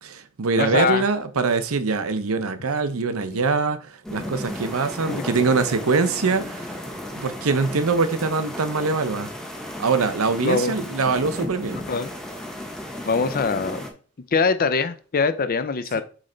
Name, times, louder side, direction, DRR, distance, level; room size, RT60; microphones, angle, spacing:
voice 1, 0.0-6.8 7.1-9.3 9.8-11.8 16.0-16.1, right 4 dB, 70° right, 0.7 m, -23 dB
voice 2, 0.6-1.0 3.3-3.4 5.1-5.2 10.4-10.9 11.7-12.1 13.1-13.8 14.3-16.0, left 5 dB, 45° left, 0.5 m, -23 dB
sound 1, 4.0-13.9, left 1 dB, 5° left, 1.0 m, -34 dB
7.6 x 3.3 x 3.9 m
head